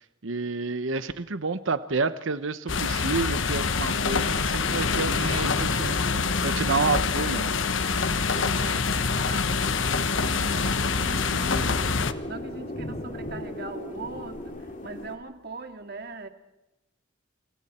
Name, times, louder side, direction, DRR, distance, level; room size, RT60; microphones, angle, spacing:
voice 1, 0.2-6.0 6.4-7.5, right 4 dB, 75° right, 1.0 m, -29 dB
sound 1, 2.7-12.1, left 4 dB, 75° left, 1.2 m, -25 dB
sound 2, 4.6-15.2, left 1 dB, 40° left, 2.6 m, -38 dB
voice 2, 8.3-16.3, right 3 dB, 55° right, 2.3 m, -40 dB
29.0 x 28.0 x 4.4 m
head